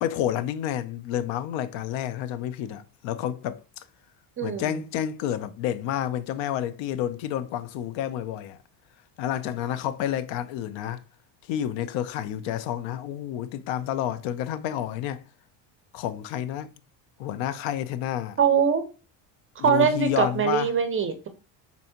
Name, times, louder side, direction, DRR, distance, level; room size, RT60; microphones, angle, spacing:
voice 1, 0.0-3.8 4.4-8.6 9.2-11.0 11.5-15.2 15.9-16.7 17.2-18.4 19.6-20.7, left 11 dB, 65° left, 0.6 m, -30 dB
voice 2, 4.4-4.8 18.4-18.8 19.6-21.3, right 7 dB, 25° right, 0.5 m, -22 dB
4.1 x 3.3 x 2.9 m
cardioid pair, 115°, 50 cm